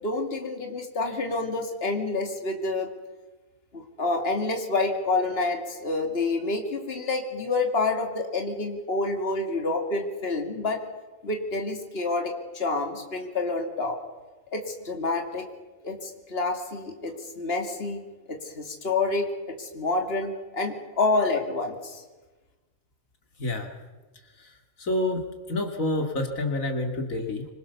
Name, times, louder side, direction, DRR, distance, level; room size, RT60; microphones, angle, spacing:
voice 1, 0.0-2.9 3.7-10.8 11.2-14.0 14.5-15.5 15.8-18.0 18.3-22.0, left 3 dB, 45° left, 4 dB, 2.7 m, -28 dB
voice 2, 24.8-27.5, left 2 dB, 80° left, 4 dB, 2.9 m, -28 dB
25.5 x 22.5 x 7.0 m, 1.2 s
omnidirectional pair, 1.4 m